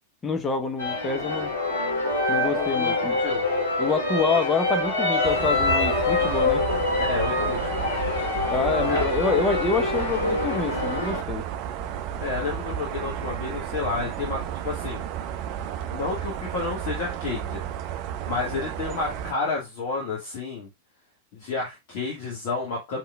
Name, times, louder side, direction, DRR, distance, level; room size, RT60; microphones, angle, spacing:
voice 1, 0.2-1.5 2.3-3.2 3.8-6.6 8.5-11.4, left 4 dB, 20° left, 1.0 m, -27 dB
sound 1, 0.8-11.2, left 2 dB, 70° left, 2.5 m, -25 dB
voice 2, 2.5-3.5 7.0-7.9 8.9-9.0 12.2-15.0 15.9-17.6 18.3-20.7 21.3-23.0, left 4 dB, 45° left, 1.7 m, -31 dB
sound 2, 5.2-19.3, right 10 dB, 40° right, 0.6 m, -32 dB
5.5 x 3.8 x 2.3 m
figure-of-eight pair, 90°, 0 cm